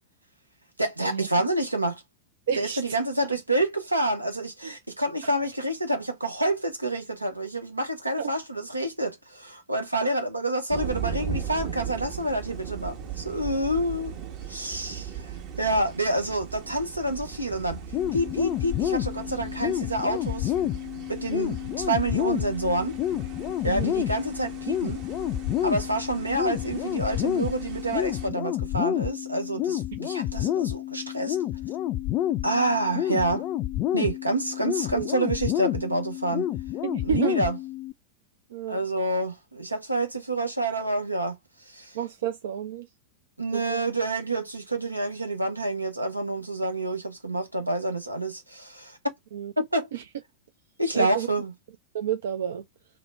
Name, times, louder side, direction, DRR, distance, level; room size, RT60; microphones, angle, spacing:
voice 1, 0.8-2.0 2.6-14.1 14.5-17.8 18.1-20.7 21.1-23.0 23.6-25.0 25.6-31.4 32.4-33.5 33.9-36.5 37.0-37.6 38.7-41.4 41.7-42.0 43.4-49.1 49.6-49.9 50.8-51.5, right 1 dB, 85° right, 0.8 m, -28 dB
voice 2, 2.5-3.0 4.6-4.7 5.2-5.3 8.2-8.3 23.6-24.0 34.9-35.1 36.8-37.4 38.5-38.8 41.9-42.9 43.5-43.8 49.3-49.5 49.9-50.0 50.9-51.3 51.9-52.6, right 9 dB, 60° right, 0.4 m, -30 dB
sound 1, 10.7-28.3, right 7 dB, 40° right, 1.0 m, -38 dB
sound 2, 17.9-37.9, left 12 dB, 40° left, 0.3 m, -29 dB
2.9 x 2.0 x 3.2 m
figure-of-eight pair, 90°, 0 cm